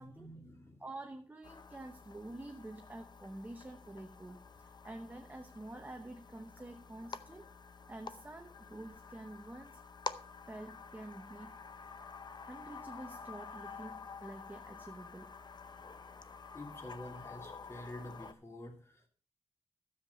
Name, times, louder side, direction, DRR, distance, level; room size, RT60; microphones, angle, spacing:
voice 1, 0.0-0.8 16.5-19.1, left 1 dB, 25° left, 3 dB, 2.7 m, -48 dB
voice 2, 0.8-7.5 7.9-9.8 10.5-12.0 12.4-15.3, right 2 dB, 15° right, 4 dB, 0.9 m, -48 dB
sound 1, 1.4-18.3, left 5 dB, 45° left, 0.7 m, -49 dB
13.0 x 7.4 x 5.3 m, 0.41 s
wide cardioid pair, 150°, 10 cm